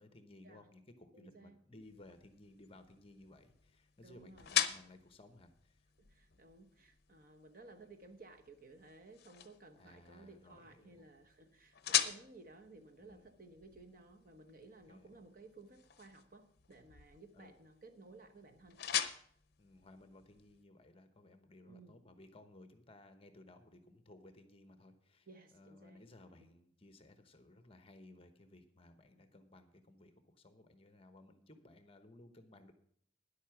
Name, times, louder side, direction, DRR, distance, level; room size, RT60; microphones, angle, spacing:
voice 1, 0.0-5.8 6.2-6.5 9.8-11.1 13.0-13.2 14.9-15.1 17.3-17.6 19.6-25.3 25.5-32.7, left 2 dB, 30° left, 8 dB, 1.0 m, -59 dB
voice 2, 1.1-1.6 4.0-4.5 6.0-18.8 21.7-22.0 25.3-26.1 26.4-26.5, right 3 dB, 45° right, 6 dB, 1.1 m, -57 dB
sound 1, 1.8-20.6, left 10 dB, 50° left, 0.7 m, -43 dB
10.5 x 8.3 x 5.9 m, 0.63 s
head